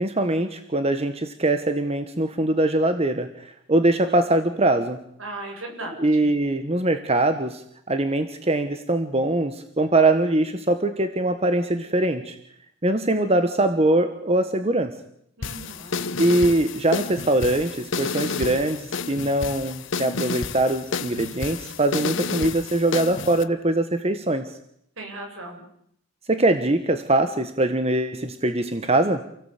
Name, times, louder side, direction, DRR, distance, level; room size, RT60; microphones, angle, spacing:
voice 1, 0.0-5.0 6.0-12.3 12.8-14.9 16.2-24.5 26.3-29.2, right 2 dB, 30° right, 8 dB, 1.4 m, -22 dB
voice 2, 5.2-6.3 15.4-16.0 25.0-25.6, right 2 dB, 75° right, 3 dB, 7.2 m, -37 dB
sound 1, 15.4-23.4, left 4 dB, 60° left, 1.1 m, -30 dB
28.5 x 17.5 x 8.5 m, 0.72 s
head